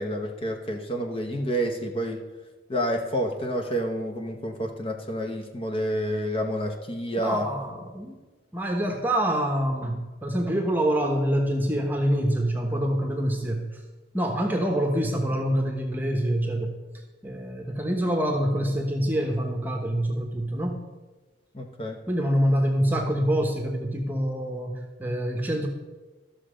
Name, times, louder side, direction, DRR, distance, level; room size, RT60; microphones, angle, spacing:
voice 1, 0.0-2.3 2.7-7.5 21.5-22.0, equal, 30° left, 4 dB, 0.9 m, -29 dB
voice 2, 7.2-8.2 8.5-13.8 14.1-16.8 17.2-20.8 22.1-25.7, equal, 10° right, 2 dB, 1.0 m, -26 dB
13.0 x 6.7 x 5.0 m, 1.2 s
head